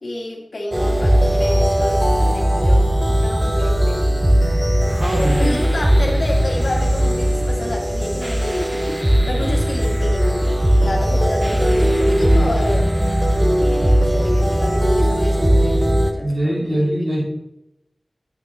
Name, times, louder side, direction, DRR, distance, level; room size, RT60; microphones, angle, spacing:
voice 1, 0.0-4.1 5.4-12.9 13.7-17.1, left 1 dB, 80° left, -1 dB, 1.7 m, -29 dB
sound 1, 0.7-16.1, equal, 15° right, 0.8 m, -18 dB
voice 2, 4.9-5.7 16.2-17.2, right 1 dB, 40° right, -2 dB, 2.3 m, -22 dB
8.8 x 5.1 x 3.4 m, 0.92 s
wide cardioid pair, 40°, 0 cm